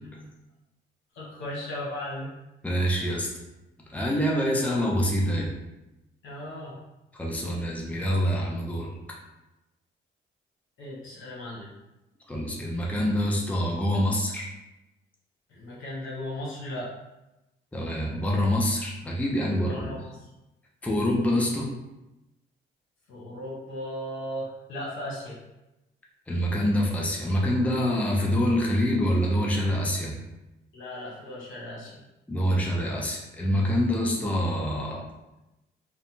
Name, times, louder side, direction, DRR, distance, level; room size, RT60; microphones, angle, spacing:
voice 1, 1.1-2.3 6.2-6.8 10.8-11.7 15.5-16.9 19.6-20.3 23.1-25.4 30.7-32.0, left 1 dB, 80° left, -5 dB, 0.9 m, -37 dB
voice 2, 2.6-3.3 3.9-5.5 7.1-9.2 12.3-14.5 17.7-19.9 20.8-21.7 26.3-30.1 32.3-35.0, equal, 5° left, -2 dB, 0.5 m, -26 dB
2.7 x 2.1 x 2.8 m, 0.97 s
cardioid pair, 90°, 20 cm